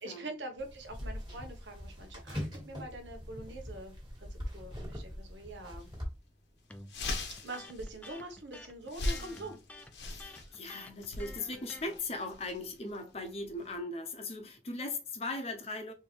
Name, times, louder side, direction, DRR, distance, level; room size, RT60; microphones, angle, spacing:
voice 1, 0.0-4.0 4.3-5.9 7.3-9.6 10.3-10.4, right 2 dB, 90° right, 1.3 m, -44 dB
sound 1, 0.6-6.0, equal, 25° right, 1.8 m, -42 dB
sound 2, 5.8-6.0 6.4-6.5 6.7-13.8, left 2 dB, 85° left, 1.3 m, -40 dB
Electric guitar, 6.7-12.0, left 2 dB, 10° left, 0.3 m, -50 dB
voice 2, 10.1-15.9, left 2 dB, 35° left, 0.8 m, -39 dB
4.3 x 3.5 x 3.3 m
head